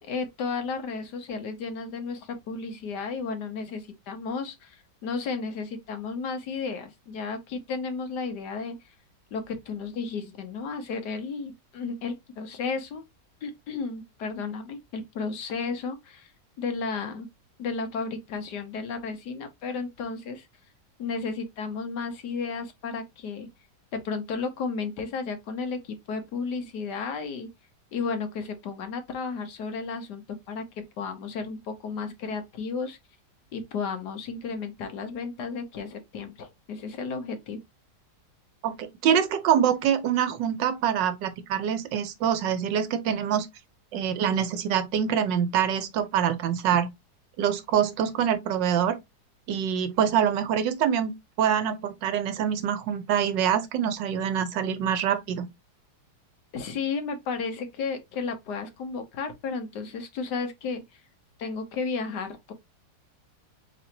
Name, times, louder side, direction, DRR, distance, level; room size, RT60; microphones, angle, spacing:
voice 1, 0.0-8.8 9.3-13.0 13.4-16.3 16.6-17.3 17.6-20.5 21.0-23.5 23.9-27.5 27.9-30.6 31.0-33.0 33.5-37.6 56.5-61.0 61.4-62.5, left 4 dB, 70° left, 1.4 m, -33 dB
voice 2, 38.6-43.5 43.9-46.9 47.4-49.0 49.5-51.1 51.4-55.5, right 8 dB, 85° right, 1.4 m, -25 dB
4.3 x 3.9 x 2.8 m
omnidirectional pair, 1.9 m